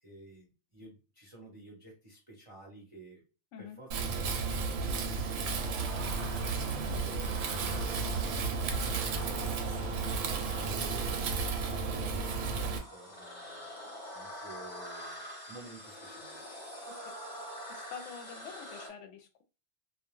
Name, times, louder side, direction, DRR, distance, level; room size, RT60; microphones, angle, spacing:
voice 1, 0.0-3.2 3.6-5.7 6.2-9.5 9.9-13.7 14.1-16.5, right 2 dB, 30° right, 0.6 m, -51 dB
Wind, 3.9-12.8, right 4 dB, 80° right, 1.0 m, -33 dB
sound 1, 4.8-18.9, equal, 35° left, 0.8 m, -45 dB
voice 2, 17.7-19.4, left 7 dB, 70° left, 0.8 m, -47 dB
2.4 x 2.2 x 3.0 m
omnidirectional pair, 1.4 m